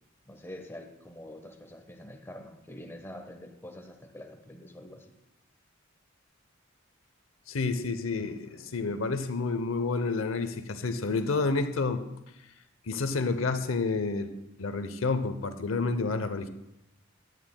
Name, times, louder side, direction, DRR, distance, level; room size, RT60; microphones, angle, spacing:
voice 1, 0.2-5.1, left 1 dB, 10° left, 3 dB, 1.1 m, -45 dB
voice 2, 7.5-12.0 12.9-14.3 14.6-16.5, left 3 dB, 90° left, 9 dB, 0.7 m, -29 dB
17.5 x 11.0 x 2.2 m, 0.85 s
head